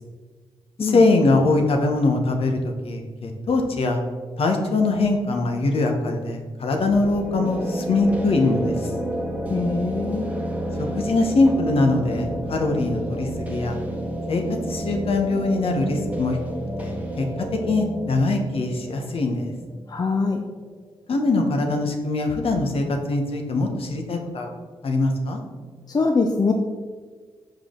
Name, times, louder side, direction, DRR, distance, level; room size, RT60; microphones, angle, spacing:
voice 1, 0.8-4.0 4.4-8.9 10.8-13.8 14.3-16.4 16.8-19.5 21.1-24.5 24.8-25.4, left 2 dB, 65° left, 3 dB, 1.0 m, -22 dB
sound 1, 6.8-20.5, right 1 dB, 15° right, 1.2 m, -30 dB
voice 2, 9.5-10.3 19.9-20.4 25.9-26.5, left 4 dB, 40° left, 4 dB, 0.6 m, -22 dB
5.7 x 5.0 x 3.7 m, 1.5 s
supercardioid pair, 55°, 11 cm